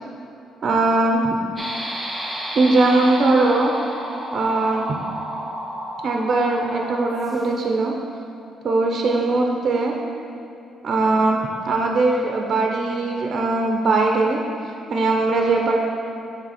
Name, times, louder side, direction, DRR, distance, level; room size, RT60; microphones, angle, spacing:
voice 1, 0.6-1.2 2.6-3.7 4.3-4.9 6.0-7.9 8.6-10.0 10.8-11.4 11.7-14.4 14.9-15.8, right 3 dB, 50° right, 1 dB, 0.6 m, -20 dB
sound 1, 1.6-7.7, equal, ahead, 0.6 m, -32 dB
6.1 x 3.7 x 4.2 m, 2.7 s
cardioid pair, 90°, 0 cm